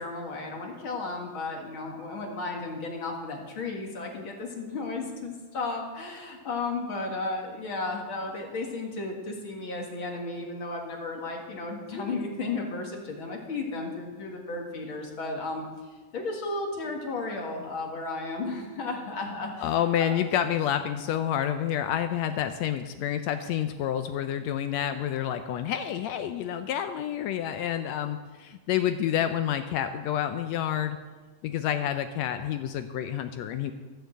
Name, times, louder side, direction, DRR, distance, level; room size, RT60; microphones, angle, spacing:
voice 1, 0.0-19.7 20.0-20.2, left 3 dB, 45° left, 1 dB, 2.1 m, -34 dB
voice 2, 19.6-31.0 31.4-33.7, left 10 dB, 80° left, 9 dB, 1.6 m, -29 dB
14.5 x 6.9 x 7.7 m, 1.3 s
omnidirectional pair, 3.6 m